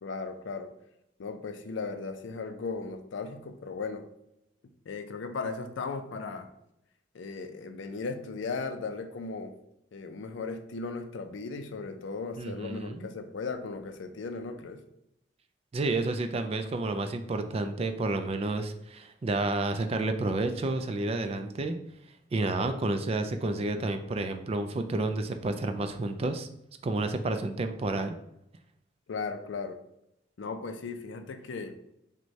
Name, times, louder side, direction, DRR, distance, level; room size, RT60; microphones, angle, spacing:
voice 1, 0.0-0.7 1.2-4.0 4.9-6.5 7.1-9.5 9.9-14.8 29.1-29.8 30.4-31.7, left 4 dB, 90° left, 7 dB, 0.5 m, -36 dB
voice 2, 12.4-13.1 15.7-21.8 22.3-26.5 26.8-28.1, right 2 dB, 35° right, 8 dB, 0.3 m, -30 dB
6.0 x 2.2 x 2.7 m, 0.81 s
head